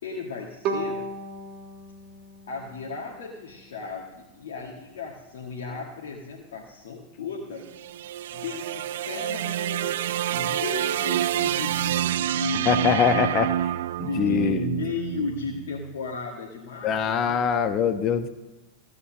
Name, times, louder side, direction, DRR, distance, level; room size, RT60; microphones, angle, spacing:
voice 1, 0.0-1.1 2.5-7.7 8.3-13.0 14.0-17.4, left 4 dB, 60° left, 0 dB, 1.8 m, -35 dB
Bowed string instrument, 0.6-3.7, right 3 dB, 40° right, 2.1 m, -35 dB
sound 1, 7.6-15.9, right 12 dB, 55° right, 0.3 m, -28 dB
voice 2, 12.6-13.7 14.0-14.6 16.8-18.3, left 7 dB, 35° left, 9 dB, 1.2 m, -23 dB
16.0 x 8.5 x 6.5 m, 1.1 s
figure-of-eight pair, 90°, 0 cm